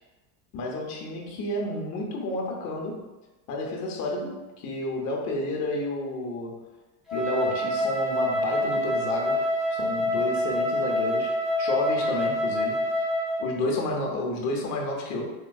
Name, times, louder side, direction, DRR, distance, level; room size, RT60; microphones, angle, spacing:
voice 1, 0.5-3.1 3.5-6.6 7.1-9.4 9.7-12.8 13.4-15.3, left 2 dB, 40° left, 0 dB, 0.7 m, -31 dB
Wind instrument woodwind instrument, 7.1-13.5, left 1 dB, ahead, 0.5 m, -26 dB
3.4 x 2.3 x 2.2 m, 1.1 s
supercardioid pair, 115°, 45 cm